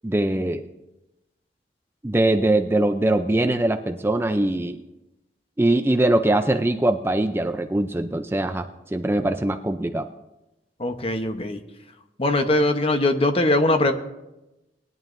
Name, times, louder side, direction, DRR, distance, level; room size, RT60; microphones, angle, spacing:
voice 1, 0.0-0.6 2.0-4.8 5.6-10.1, right 1 dB, 15° right, 7 dB, 0.4 m, -22 dB
voice 2, 10.8-11.6 12.2-13.9, left 2 dB, 35° left, 7 dB, 0.9 m, -21 dB
20.0 x 11.0 x 2.6 m, 0.95 s
head